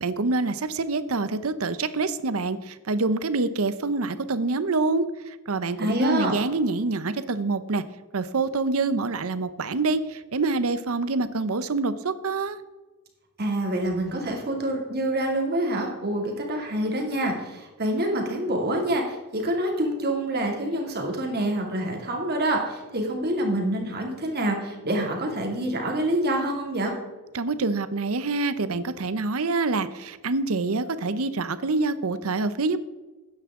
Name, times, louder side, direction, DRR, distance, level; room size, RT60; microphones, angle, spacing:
voice 1, 0.0-7.8 8.1-12.6 27.3-32.8, right 3 dB, 70° right, 13 dB, 0.7 m, -26 dB
voice 2, 5.8-6.3 13.4-26.9, right 1 dB, 45° right, 1 dB, 2.5 m, -26 dB
13.0 x 9.7 x 3.7 m, 1.2 s
head